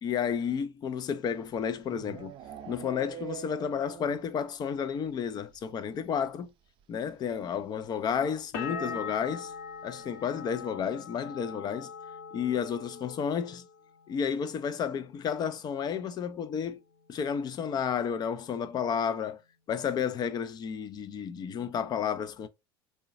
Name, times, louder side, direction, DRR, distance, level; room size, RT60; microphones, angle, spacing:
voice 1, 0.0-2.3 2.7-6.5 6.9-9.5 9.8-11.9 12.3-13.6 14.1-16.8 17.1-19.4 19.7-22.5, left 7 dB, 30° left, 0.4 m, -31 dB
sound 1, 1.3-4.4 4.7-4.8 5.1-5.2 5.4-5.6 6.8-6.9 8.6-9.5, right 10 dB, 40° right, 0.4 m, -44 dB
sound 2, 8.5-14.2 14.5-15.2, left 6 dB, 60° left, 0.7 m, -42 dB
3.7 x 2.2 x 2.5 m
figure-of-eight pair, 75°, 13 cm